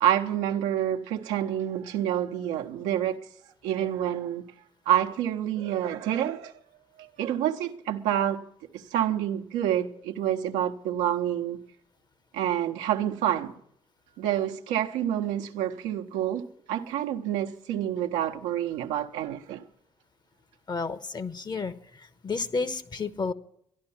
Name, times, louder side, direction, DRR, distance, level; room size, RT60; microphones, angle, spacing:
voice 1, 0.0-3.2 3.6-4.4 4.9-6.5 7.0-8.4 8.7-11.6 12.3-13.5 14.2-19.6, right 11 dB, 80° right, 1.0 m, -28 dB
voice 2, 20.7-21.7 22.2-23.3, left 4 dB, 40° left, 1.1 m, -31 dB
13.0 x 11.5 x 7.1 m
hypercardioid pair, 50°, 11 cm